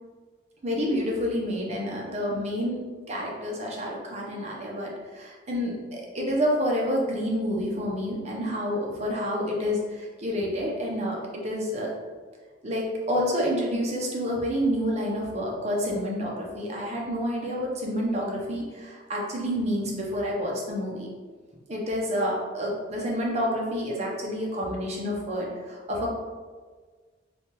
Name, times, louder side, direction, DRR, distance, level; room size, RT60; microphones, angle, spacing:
voice 1, 0.6-11.9 12.6-21.1 21.7-26.1, equal, 30° right, -2 dB, 0.5 m, -29 dB
3.3 x 2.2 x 2.8 m, 1.5 s
head